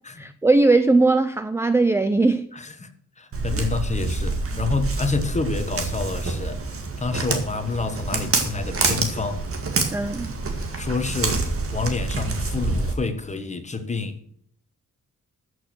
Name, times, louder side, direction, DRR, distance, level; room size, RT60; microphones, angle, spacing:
voice 1, 0.2-2.5 3.6-3.7 9.9-10.3, right 3 dB, 10° right, 0.4 m, -19 dB
voice 2, 2.5-6.6 7.0-9.5 10.8-14.2, left 4 dB, 20° left, 1.3 m, -28 dB
Walk footsteps, 3.3-12.9, right 3 dB, 45° right, 2.0 m, -27 dB
13.5 x 6.3 x 6.3 m
wide cardioid pair, 150°, 32 cm